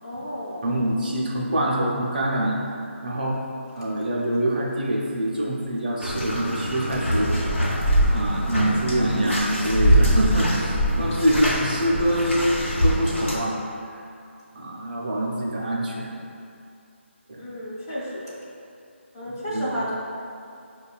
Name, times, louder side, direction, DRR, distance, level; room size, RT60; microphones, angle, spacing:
voice 1, 0.0-0.8 17.4-18.4 19.1-19.9, equal, 15° left, -9 dB, 0.3 m, -32 dB
voice 2, 0.6-3.4 3.7-7.5 8.1-12.4 12.8-13.6 14.5-16.1 17.3-17.5 19.2-19.7, right 1 dB, 40° right, -3 dB, 0.5 m, -25 dB
Bathtub (filling or washing), 6.0-13.4, equal, 70° left, 0.9 m, -23 dB
5.1 x 2.2 x 2.4 m, 2.5 s
figure-of-eight pair, 165°, 7 cm